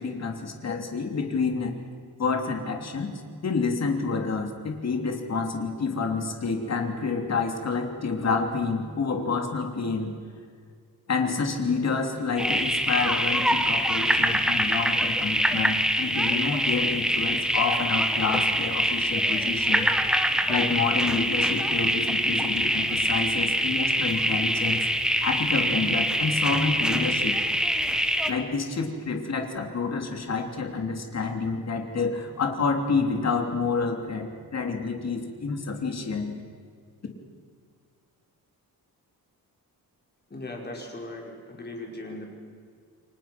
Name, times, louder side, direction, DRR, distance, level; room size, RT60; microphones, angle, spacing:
voice 1, 0.0-1.7 2.2-3.1 3.4-10.2 11.1-19.9 20.5-24.9 25.2-27.3 28.3-36.4, left 4 dB, 45° left, 3 dB, 3.3 m, -28 dB
sound 1, 12.4-28.3, equal, ahead, 1.5 m, -24 dB
voice 2, 40.3-42.2, left 2 dB, 25° left, 0 dB, 5.2 m, -38 dB
29.5 x 24.0 x 6.1 m, 2.1 s
wide cardioid pair, 145°, 36 cm